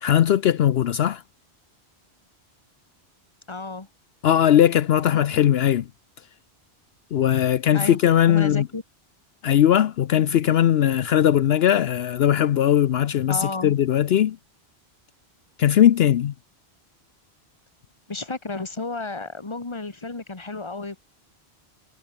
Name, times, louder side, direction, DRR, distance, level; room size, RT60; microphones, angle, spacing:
voice 1, 0.0-1.2 4.2-5.9 7.1-8.7 9.4-14.4 15.6-16.3, left 10 dB, 70° left, 0.9 m, -19 dB
voice 2, 3.5-3.9 7.7-8.0 8.3-8.8 13.3-13.7 18.1-21.0, left 3 dB, 25° left, 1.6 m, -32 dB
omnidirectional pair, 1.1 m